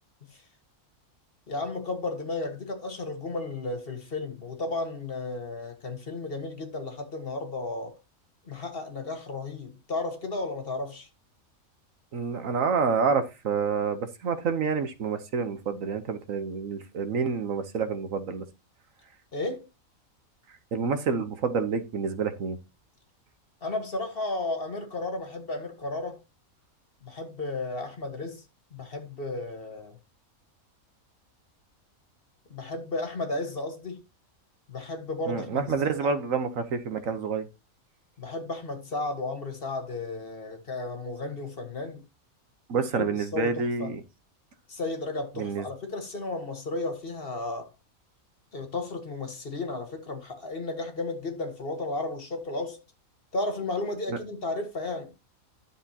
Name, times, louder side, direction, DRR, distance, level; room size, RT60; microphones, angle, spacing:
voice 1, 1.5-8.0 8.5-11.1 19.3-19.6 23.6-26.2 27.0-28.4 28.7-30.0 32.5-34.0 34.7-35.6 36.0-36.1 38.2-42.0 42.9-43.9 44.7-47.7 48.5-52.8 53.3-55.1, left 2 dB, 40° left, 1.8 m, -33 dB
voice 2, 12.1-18.4 20.7-22.6 35.3-37.5 42.7-44.0 45.4-45.7 54.1-54.2, right 5 dB, 65° right, 1.4 m, -28 dB
11.0 x 7.2 x 2.9 m
omnidirectional pair, 1.5 m